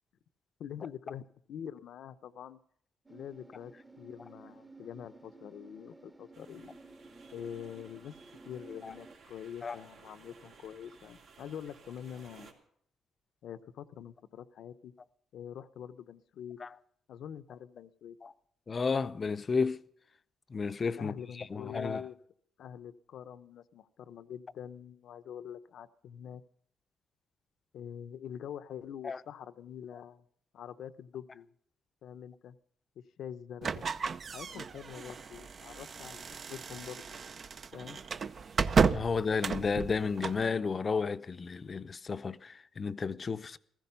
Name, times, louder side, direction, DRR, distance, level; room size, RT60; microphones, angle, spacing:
voice 1, 0.6-1.2 1.5-2.6 3.1-6.8 7.3-8.1 8.4-12.5 13.4-14.9 15.3-16.6 17.1-18.2 21.0-22.2 22.6-26.4 27.7-30.3 30.5-31.5 32.0-32.6 33.0-33.9 34.3-36.2 36.5-37.2 37.7-38.0, left 9 dB, 75° left, 0.7 m, -45 dB
sound 1, 3.1-9.2, right 3 dB, 10° right, 0.9 m, -54 dB
sound 2, 6.3-12.5, right 5 dB, 75° right, 2.9 m, -58 dB
voice 2, 18.7-19.8 20.5-22.1 29.0-29.2 38.9-43.6, left 5 dB, 35° left, 0.6 m, -32 dB
sound 3, 33.6-40.5, right 5 dB, 45° right, 0.6 m, -33 dB
15.5 x 15.0 x 5.6 m
cardioid pair, 90°, 0 cm